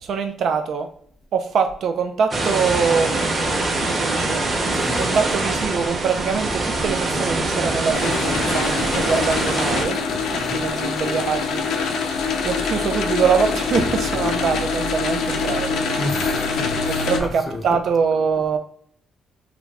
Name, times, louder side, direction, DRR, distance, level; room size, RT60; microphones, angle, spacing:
voice 1, 0.0-0.9 1.3-3.3 3.8-4.4 4.9-10.0 10.5-11.6 12.4-16.0 17.1-18.6, right 6 dB, 65° right, 6 dB, 0.4 m, -23 dB
sound 1, 2.3-9.9, right 2 dB, 35° right, 0.8 m, -23 dB
voice 2, 4.7-5.1 10.3-10.7 16.0-17.8, left 1 dB, 20° left, 4 dB, 0.6 m, -31 dB
sound 2, 7.9-17.2, left 4 dB, 75° left, 0.6 m, -24 dB
3.0 x 2.4 x 3.4 m, 0.64 s
cardioid pair, 90°, 0 cm